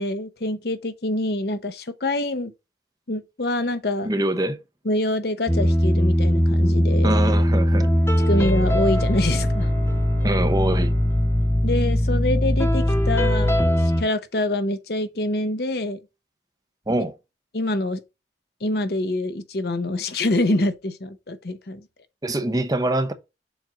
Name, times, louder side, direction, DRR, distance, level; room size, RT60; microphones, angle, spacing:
voice 1, 0.0-2.5 3.1-4.1 4.8-7.2 8.3-9.7 11.6-16.0 17.5-18.0 18.6-21.9, left 1 dB, 60° left, 0.8 m, -25 dB
voice 2, 4.1-4.6 7.0-7.9 10.2-11.0 16.9-17.1 22.2-23.1, right 1 dB, 20° right, 0.7 m, -24 dB
sound 1, 5.5-14.0, equal, 15° left, 1.0 m, -20 dB
Bowed string instrument, 7.7-12.7, equal, 50° right, 1.8 m, -41 dB
7.1 x 2.6 x 5.7 m
head